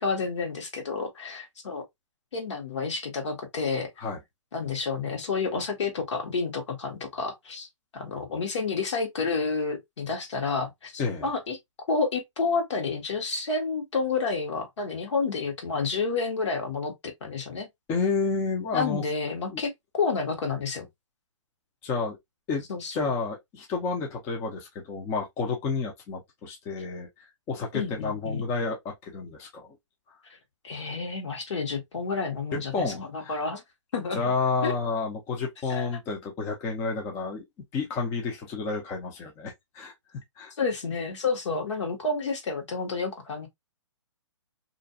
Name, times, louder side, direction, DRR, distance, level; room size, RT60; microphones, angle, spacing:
voice 1, 0.0-1.8 2.3-3.9 4.5-7.7 7.9-11.6 11.9-17.7 18.7-20.9 22.7-23.1 27.7-28.4 30.6-33.6 33.9-34.3 34.6-34.7 35.7-35.9 40.6-43.5, left 4 dB, 65° left, 1.1 m, -30 dB
voice 2, 11.0-11.3 17.9-19.0 19.5-19.6 21.8-22.2 22.5-22.6 22.9-29.8 32.5-33.5 34.1-37.5 37.7-39.9 40.4-40.5, left 4 dB, 15° left, 0.5 m, -30 dB
2.5 x 2.2 x 2.5 m
hypercardioid pair, 145°, 16 cm